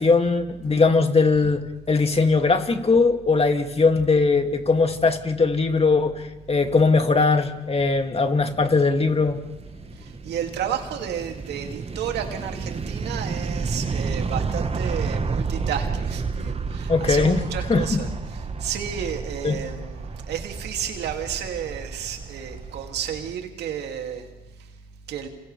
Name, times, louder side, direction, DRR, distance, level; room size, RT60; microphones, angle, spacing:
voice 1, 0.0-9.4 16.9-17.4 17.7-18.0 19.4-19.6, left 4 dB, 35° left, 5 dB, 2.5 m, -20 dB
sound 1, 7.8-23.3, right 4 dB, 35° right, 1.4 m, -31 dB
voice 2, 10.0-24.3 25.1-25.3, right 8 dB, 75° right, 3 dB, 2.6 m, -32 dB
29.5 x 28.0 x 3.4 m, 1.1 s
supercardioid pair, 50°, 17 cm